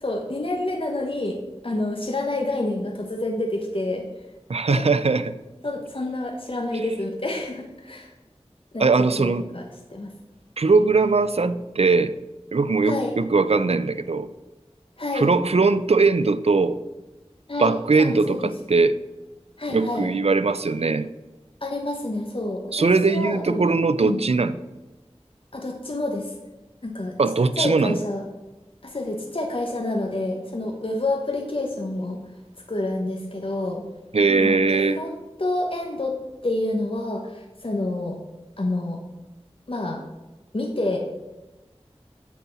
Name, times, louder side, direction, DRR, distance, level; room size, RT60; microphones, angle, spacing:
voice 1, 0.0-4.0 4.7-4.8 5.6-8.1 8.7-9.6 9.9-10.1 12.8-13.1 15.0-15.3 17.5-18.5 19.6-20.1 21.6-24.2 25.5-26.3 26.8-27.1 27.6-28.2 28.8-32.2 32.7-33.8 34.3-36.2 36.4-38.2 38.6-39.0 39.7-40.0 40.5-41.0, left 2 dB, 55° left, 1 dB, 1.0 m, -28 dB
voice 2, 4.5-5.3 8.8-9.4 10.6-12.1 12.5-14.3 15.1-16.8 17.6-19.0 19.7-21.1 22.7-24.5 27.2-28.0 34.1-35.0, right 4 dB, 70° right, 13 dB, 0.4 m, -20 dB
8.4 x 4.2 x 6.9 m, 1.1 s
wide cardioid pair, 40°, 11 cm